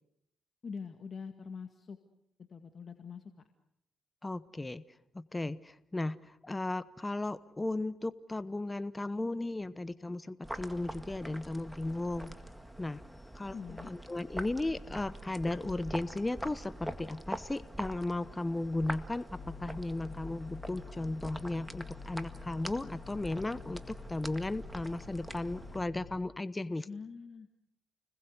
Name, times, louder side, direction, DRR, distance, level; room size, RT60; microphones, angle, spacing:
voice 1, 0.6-2.0 2.5-3.2 13.5-13.9 26.9-27.5, left 5 dB, 40° left, 6 dB, 2.0 m, -44 dB
voice 2, 4.2-4.8 5.1-12.4 12.8-13.0 13.3-13.5 13.8-19.3 19.6-26.9, left 2 dB, 15° left, 14 dB, 1.0 m, -35 dB
sound 1, 10.4-25.8, right 1 dB, 5° right, 1.9 m, -45 dB
sound 2, 19.3-26.2, left 6 dB, 60° left, 1.6 m, -49 dB
30.0 x 21.0 x 8.1 m, 0.78 s
cardioid pair, 90°, 0 cm